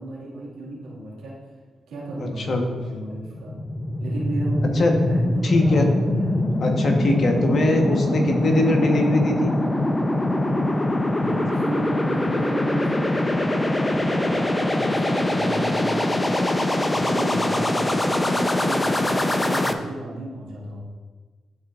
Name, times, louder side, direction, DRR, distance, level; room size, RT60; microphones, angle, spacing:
voice 1, 0.0-1.4 1.9-3.6 4.0-6.4 11.2-16.4 16.9-20.8, right 2 dB, 80° right, -6 dB, 2.1 m, -35 dB
voice 2, 2.2-2.6 4.8-4.9 5.4-5.9 6.6-9.5, left 1 dB, 55° left, 2 dB, 1.2 m, -21 dB
sound 1, 3.2-19.7, left 1 dB, 25° left, 0.6 m, -23 dB
12.5 x 4.2 x 2.5 m, 1.4 s
hypercardioid pair, 45°, 0 cm